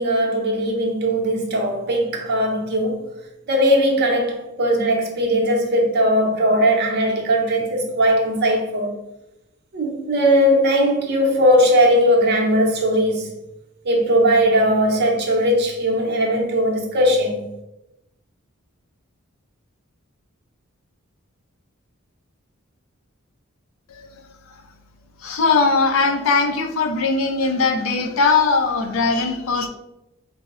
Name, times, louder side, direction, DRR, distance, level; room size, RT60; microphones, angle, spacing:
voice 1, 0.0-3.0 3.5-8.9 9.7-13.3 13.8-17.5, equal, 50° right, 0.7 m, -19 dB
voice 2, 25.2-29.7, left 4 dB, 70° left, 0.4 m, -20 dB
4.6 x 2.0 x 2.4 m
head